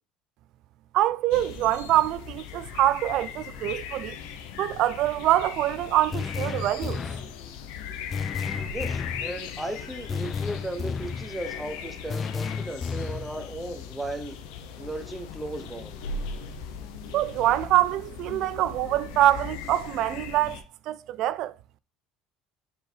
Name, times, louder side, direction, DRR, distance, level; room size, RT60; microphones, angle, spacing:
voice 1, 0.9-4.2 4.6-7.0 17.1-21.5, right 14 dB, 60° right, 0.4 m, -25 dB
sound 1, 1.3-20.6, left 6 dB, 75° left, 0.8 m, -39 dB
sound 2, 6.1-7.3 8.1-9.3 10.1-11.3 12.1-13.3, left 5 dB, 30° left, 0.3 m, -32 dB
voice 2, 8.7-14.4 14.8-16.0, right 1 dB, 5° right, 1.1 m, -36 dB
4.6 x 4.5 x 4.6 m
supercardioid pair, 115°, 0 cm